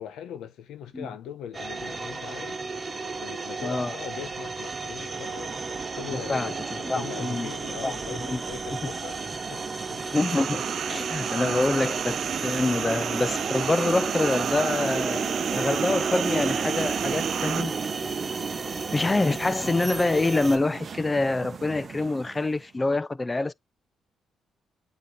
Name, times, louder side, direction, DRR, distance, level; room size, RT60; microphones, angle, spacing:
voice 1, 0.0-2.6 3.0-5.6 5.9-10.0, left 9 dB, 85° left, 1.1 m, -41 dB
sound 1, 1.5-20.6, right 3 dB, 25° right, 1.3 m, -35 dB
voice 2, 3.6-3.9 6.1-7.5 7.8-8.4 8.8-8.9 10.1-10.6 10.9-17.7 18.9-23.5, left 2 dB, 20° left, 0.4 m, -26 dB
sound 2, 5.1-22.6, right 6 dB, 45° right, 0.7 m, -34 dB
sound 3, 10.1-17.6, right 9 dB, 65° right, 0.3 m, -32 dB
8.4 x 2.8 x 4.0 m
cardioid pair, 90°, 0 cm